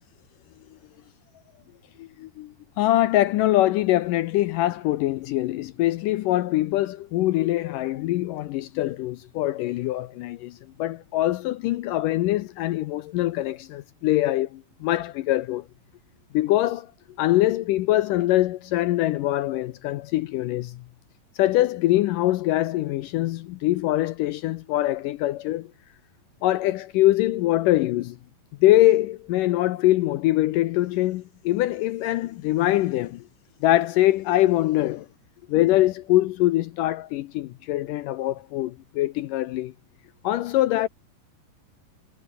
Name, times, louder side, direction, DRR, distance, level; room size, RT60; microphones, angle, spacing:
voice 1, 2.0-15.7 16.3-16.9 17.2-20.8 21.4-25.7 26.4-28.2 28.6-33.2 33.6-35.1 35.5-39.7 40.2-40.9, left 15 dB, 80° left, 1.9 m, -23 dB
omnidirectional pair, 4.6 m